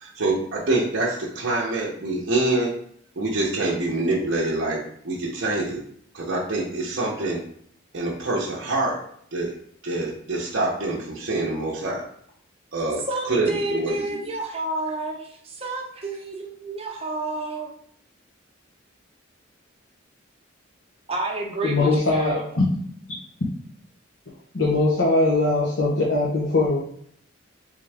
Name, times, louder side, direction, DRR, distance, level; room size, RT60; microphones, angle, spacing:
voice 1, 0.0-2.7 3.2-5.8 6.1-7.4 7.9-9.1 9.3-9.6 9.8-12.0 12.7-13.0 13.3-14.3, right 2 dB, 60° right, -5 dB, 0.7 m, -25 dB
voice 2, 13.1-17.7 21.1-22.4, right 2 dB, 30° right, -1 dB, 0.9 m, -30 dB
voice 3, 21.6-22.8 24.5-26.8, left 2 dB, 65° left, -5 dB, 0.8 m, -21 dB
3.6 x 3.5 x 3.4 m, 0.65 s
head